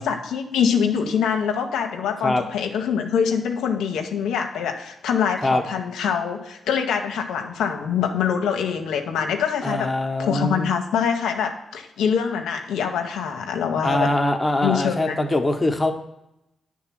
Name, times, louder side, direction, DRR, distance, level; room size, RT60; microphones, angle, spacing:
voice 1, 0.0-9.9 10.2-14.1 14.6-15.2, left 7 dB, 90° left, 3 dB, 0.7 m, -24 dB
voice 2, 9.6-10.7 13.8-15.9, left 1 dB, 25° left, 6 dB, 1.0 m, -22 dB
9.4 x 3.6 x 6.0 m, 0.88 s
cardioid pair, 60°, 0 cm